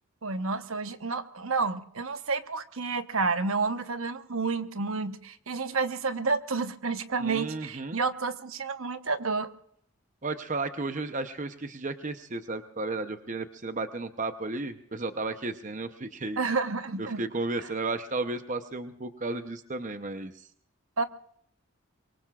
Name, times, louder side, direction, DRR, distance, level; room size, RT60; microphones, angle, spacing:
voice 1, 0.2-9.5 16.4-17.2 17.6-17.7 21.0-21.1, right 4 dB, 70° right, 9 dB, 1.0 m, -30 dB
voice 2, 7.2-8.0 10.2-16.4 17.0-20.5, right 3 dB, 35° right, 9 dB, 0.8 m, -33 dB
24.0 x 24.0 x 2.4 m, 0.65 s
head